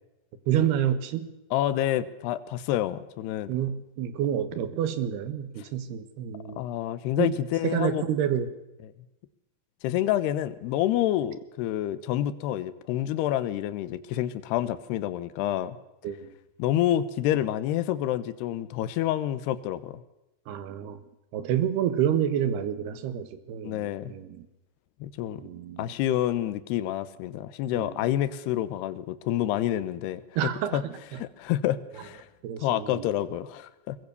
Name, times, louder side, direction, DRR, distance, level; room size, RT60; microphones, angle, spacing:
voice 1, 0.5-1.3 3.5-6.6 7.2-7.4 7.6-8.5 16.0-16.3 20.5-21.0 21.3-24.5 25.4-25.9 27.7-27.9 30.4-31.2 32.4-33.1, right 10 dB, 70° right, 12 dB, 3.3 m, -28 dB
voice 2, 1.5-3.5 6.6-8.0 9.8-15.8 16.6-20.0 23.6-24.1 25.0-25.4 25.8-30.2 30.7-30.8 31.2-32.3 32.6-34.0, left 12 dB, 75° left, 13 dB, 3.0 m, -28 dB
22.5 x 20.5 x 6.9 m, 0.93 s
omnidirectional pair, 5.0 m